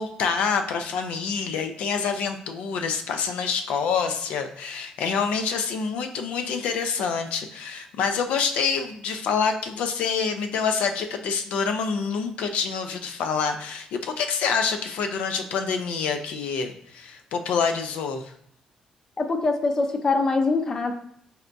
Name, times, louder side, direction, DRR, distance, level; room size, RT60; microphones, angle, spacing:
voice 1, 0.0-18.2, left 5 dB, 85° left, 6 dB, 0.4 m, -27 dB
voice 2, 19.2-20.9, left 3 dB, 25° left, 6 dB, 0.4 m, -23 dB
4.1 x 3.3 x 2.6 m, 0.69 s
cardioid pair, 160°, 2 cm